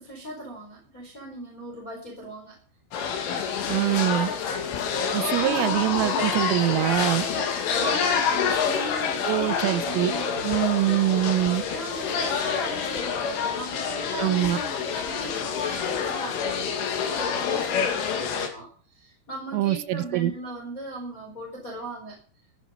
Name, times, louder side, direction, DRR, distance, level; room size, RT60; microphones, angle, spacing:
voice 1, 0.0-2.6 5.3-6.5 7.7-10.4 11.5-22.2, right 1 dB, 15° left, -1 dB, 4.4 m, -38 dB
sound 1, 2.9-18.5, left 6 dB, 70° left, 4.7 m, -27 dB
voice 2, 3.7-4.3 5.1-7.3 9.2-10.1 10.4-11.6 14.2-14.6 19.5-20.3, right 15 dB, 80° right, 12 dB, 3.4 m, -24 dB
14.5 x 13.5 x 5.2 m, 0.40 s
omnidirectional pair, 5.9 m